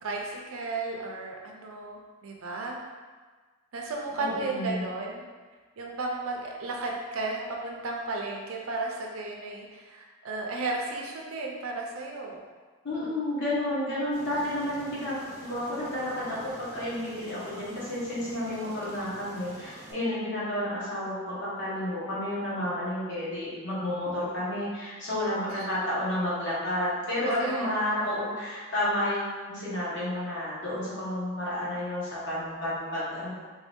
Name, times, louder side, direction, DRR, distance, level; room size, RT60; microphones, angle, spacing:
voice 1, 0.0-2.8 3.7-5.2 5.8-12.4 25.5-25.7 27.2-28.1, right 3 dB, 70° right, 0 dB, 0.6 m, -34 dB
voice 2, 4.2-4.8 12.8-33.4, left 1 dB, 60° left, -9 dB, 1.4 m, -31 dB
Aircraft, 14.1-19.9, right 1 dB, 35° right, 0.8 m, -47 dB
3.4 x 2.7 x 3.5 m, 1.4 s
head